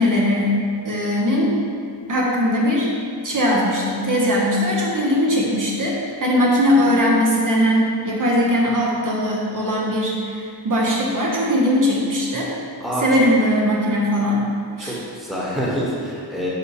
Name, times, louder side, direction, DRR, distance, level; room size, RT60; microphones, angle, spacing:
voice 1, 0.0-1.5 2.1-2.9 3.2-12.5 13.0-14.5 14.8-15.0, equal, 50° right, -4 dB, 1.1 m, -20 dB
voice 2, 14.8-16.5, equal, ahead, -6 dB, 1.2 m, -26 dB
5.5 x 5.5 x 4.9 m, 2.3 s
wide cardioid pair, 145°, 41 cm